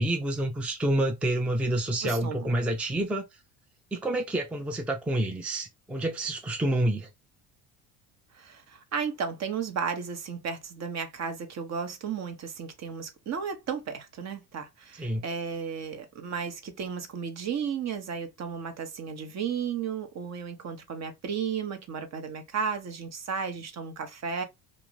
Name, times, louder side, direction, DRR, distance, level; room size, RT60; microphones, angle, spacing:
voice 1, 0.0-3.3 3.9-7.1 15.0-15.2, right 1 dB, 5° right, 0.4 m, -28 dB
voice 2, 2.0-2.5 8.3-24.4, right 6 dB, 40° right, 0.8 m, -34 dB
2.6 x 2.4 x 3.0 m
hypercardioid pair, 75°, 41 cm